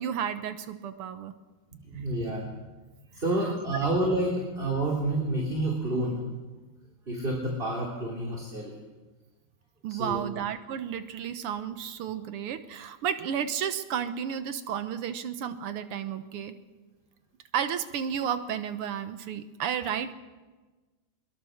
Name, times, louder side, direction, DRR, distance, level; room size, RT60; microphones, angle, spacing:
voice 1, 0.0-1.3 9.8-16.5 17.5-20.1, right 8 dB, 75° right, 10 dB, 1.3 m, -32 dB
voice 2, 1.8-2.5 3.1-6.2 7.1-8.7 9.9-10.3, right 1 dB, 15° right, -3 dB, 3.3 m, -29 dB
22.0 x 22.0 x 6.5 m, 1.3 s
omnidirectional pair, 3.7 m